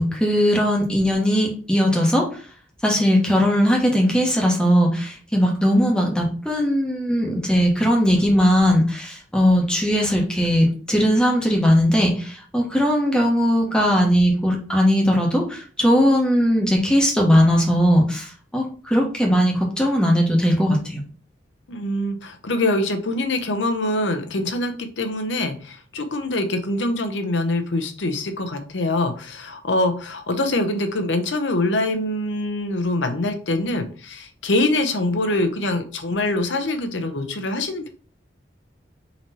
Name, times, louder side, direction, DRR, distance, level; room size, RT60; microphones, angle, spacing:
voice 1, 0.0-2.3 2.8-21.0, equal, 5° left, -1 dB, 1.0 m, -19 dB
voice 2, 21.7-37.9, left 2 dB, 85° left, 7 dB, 0.7 m, -24 dB
3.9 x 3.1 x 4.1 m, 0.41 s
head